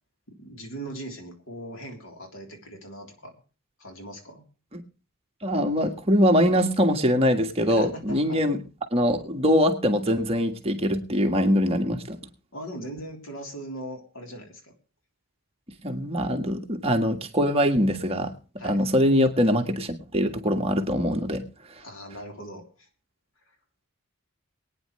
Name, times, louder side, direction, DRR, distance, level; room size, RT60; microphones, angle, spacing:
voice 1, 0.3-3.3 3.8-4.4 7.8-8.5 12.5-14.7 18.6-18.8 21.8-22.9 23.5-23.6, right 1 dB, 65° left, 3 dB, 3.6 m, -40 dB
voice 2, 5.4-8.6 8.9-12.2 15.8-18.3 18.6-21.4, equal, 30° right, 4 dB, 1.6 m, -23 dB
23.0 x 9.6 x 3.2 m, 0.36 s
head